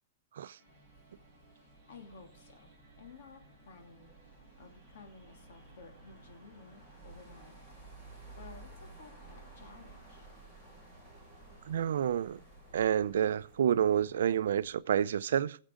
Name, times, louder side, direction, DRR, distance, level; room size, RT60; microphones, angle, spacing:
sound 1, 0.6-7.7, right 2 dB, 5° right, 4.9 m, -65 dB
sound 2, 0.7-14.8, right 2 dB, 10° left, 3.5 m, -55 dB
voice 1, 1.6-2.7 3.0-7.6 8.3-10.3, left 4 dB, 60° left, 2.6 m, -54 dB
voice 2, 11.7-12.4 12.7-15.6, right 9 dB, 80° right, 0.5 m, -29 dB
21.5 x 7.3 x 3.7 m
supercardioid pair, 180°, 0 cm